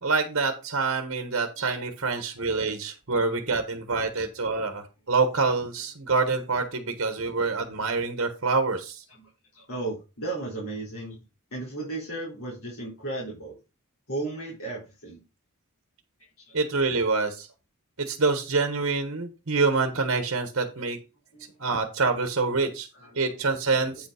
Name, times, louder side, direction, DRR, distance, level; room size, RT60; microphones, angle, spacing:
voice 1, 0.0-9.0 16.5-17.5 18.0-21.0 21.6-22.9 23.1-24.1, right 4 dB, 55° right, 8 dB, 1.2 m, -26 dB
voice 2, 9.1-11.2 11.5-13.6 14.1-15.2 16.2-16.5 21.3-21.6 22.9-24.0, right 2 dB, 70° left, -5 dB, 3.8 m, -36 dB
8.8 x 5.2 x 4.9 m, 0.29 s
head